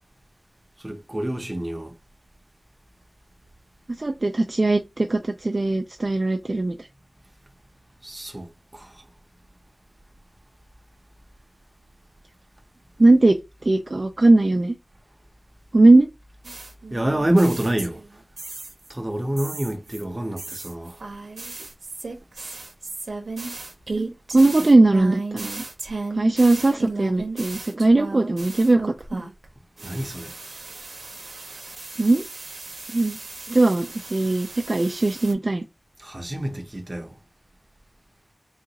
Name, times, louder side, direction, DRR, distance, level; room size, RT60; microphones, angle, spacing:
voice 1, 0.8-1.9 8.0-8.9 16.9-18.0 18.9-21.0 29.8-30.3 36.0-37.1, right 1 dB, 30° right, 0.7 m, -27 dB
voice 2, 4.0-6.9 13.0-13.4 13.6-14.8 15.7-16.1 24.0-24.1 24.3-25.6 26.2-29.2 32.0-32.2 32.9-33.2 33.5-35.6, right 2 dB, 45° right, 0.3 m, -19 dB
sound 1, 16.4-18.9 19.4-29.5 29.8-35.3, right 3 dB, 90° right, 0.6 m, -35 dB
3.7 x 2.4 x 2.8 m
wide cardioid pair, 70°, 0 cm